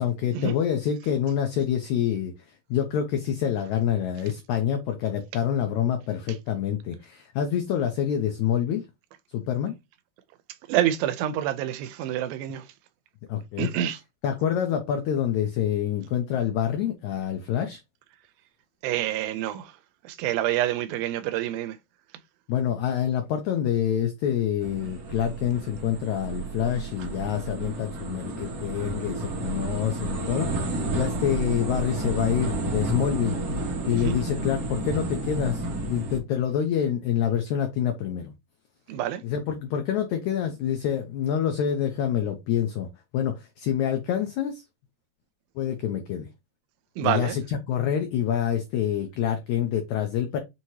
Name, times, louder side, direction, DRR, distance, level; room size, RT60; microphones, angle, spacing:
voice 1, 0.0-2.3 2.7-8.8 9.3-9.8 13.3-13.7 14.2-17.8 22.5-33.3 33.6-38.3 39.2-42.9 43.1-44.6 45.6-46.3 47.0-50.4, left 9 dB, 90° left, 1.6 m, -27 dB
voice 2, 10.7-12.7 13.6-14.0 18.8-19.7 20.1-21.8 33.9-34.2 38.9-39.2 47.0-47.4, right 11 dB, 85° right, 2.4 m, -27 dB
sound 1, 24.6-36.2, right 2 dB, 60° right, 1.7 m, -31 dB
6.0 x 2.8 x 2.9 m
omnidirectional pair, 4.1 m